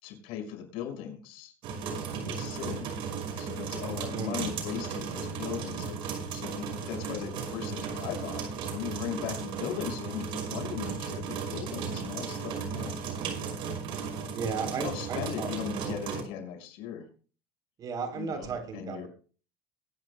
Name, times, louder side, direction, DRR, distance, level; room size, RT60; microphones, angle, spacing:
voice 1, 0.0-1.5 2.1-2.9 3.4-13.0 14.8-17.1 18.1-19.1, left 9 dB, 75° left, 3 dB, 5.4 m, -38 dB
sound 1, 1.6-16.2, right 6 dB, 60° right, 5.7 m, -35 dB
voice 2, 4.1-4.5 14.3-16.0 17.8-19.1, right 5 dB, 40° right, 5 dB, 3.5 m, -35 dB
23.0 x 11.0 x 2.2 m, 0.39 s
cardioid pair, 125°, 10 cm